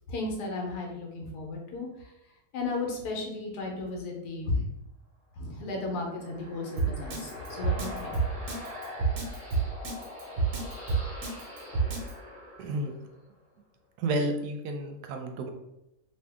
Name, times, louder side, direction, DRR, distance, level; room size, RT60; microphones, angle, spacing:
voice 1, 0.1-2.1 2.5-4.6 5.4-8.1, left 3 dB, 85° left, 0 dB, 1.4 m, -34 dB
sound 1, 5.7-13.3, left 2 dB, 30° left, 1.5 m, -43 dB
Drum kit, 6.8-12.1, right 5 dB, 60° right, 1.4 m, -28 dB
voice 2, 12.6-12.9 14.0-15.5, right 1 dB, 85° right, 4 dB, 1.1 m, -31 dB
2.9 x 2.7 x 3.4 m, 0.87 s
omnidirectional pair, 1.7 m